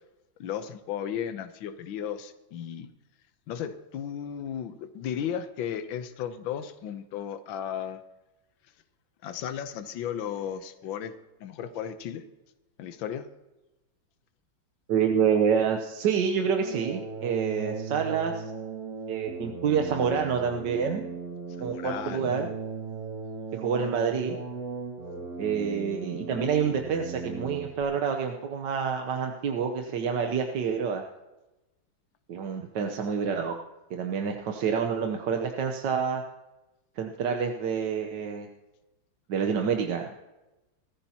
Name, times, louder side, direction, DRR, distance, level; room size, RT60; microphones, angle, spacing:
voice 1, 0.4-2.9 3.5-8.0 9.2-11.1 11.4-12.2 12.8-13.3 21.6-22.3, left 9 dB, 80° left, 10 dB, 1.6 m, -35 dB
voice 2, 14.9-18.4 19.1-21.0 21.6-22.5 23.5-24.4 25.4-31.0 32.3-33.6 33.9-36.2 37.0-38.5 39.3-40.3, right 6 dB, 70° right, 4 dB, 1.5 m, -27 dB
sound 1, 16.5-27.8, right 4 dB, 50° right, 2.3 m, -37 dB
21.0 x 14.5 x 2.9 m, 1.1 s
omnidirectional pair, 2.1 m